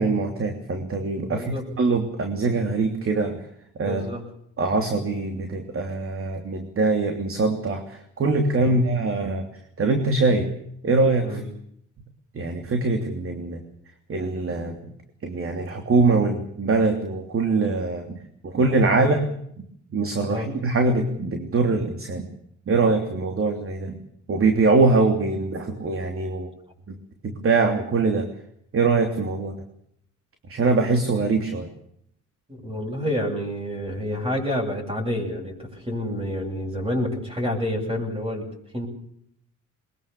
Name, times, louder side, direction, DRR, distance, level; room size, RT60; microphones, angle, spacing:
voice 1, 0.0-3.4 3.8-4.1 4.6-9.5 9.8-10.5 10.8-11.4 12.3-13.6 14.1-14.9 15.2-19.2 19.9-22.3 22.7-24.0 24.3-26.5 26.9-27.0 27.2-28.3 28.7-29.6 30.5-31.7, right 3 dB, 45° right, 5 dB, 3.1 m, -23 dB
voice 2, 1.2-1.6 3.8-4.2 8.6-8.8 11.2-11.4 18.9-19.2 20.3-20.5 32.5-38.5 38.7-38.9, left 1 dB, 20° right, 0 dB, 8.0 m, -28 dB
22.0 x 21.0 x 7.0 m, 0.70 s
cardioid pair, 90°, 30 cm